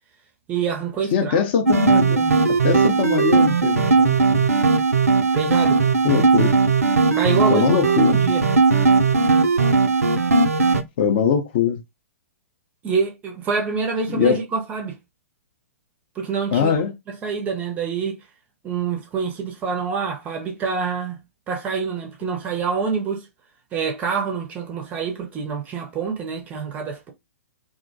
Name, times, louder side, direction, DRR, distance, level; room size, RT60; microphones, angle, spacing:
voice 1, 0.5-1.4 5.3-5.9 7.1-7.7 8.1-8.4 12.8-15.0 16.2-16.7 17.1-18.2 18.6-21.2 21.5-23.3 23.7-27.1, right 5 dB, 20° right, 0.5 m, -26 dB
voice 2, 1.1-4.5 6.0-6.6 7.5-8.2 11.0-11.8 14.1-14.4 16.5-16.9, left 7 dB, 40° left, 0.5 m, -22 dB
sound 1, 1.7-10.8, right 4 dB, 75° right, 0.4 m, -18 dB
2.4 x 2.1 x 2.5 m
figure-of-eight pair, 115°, 8 cm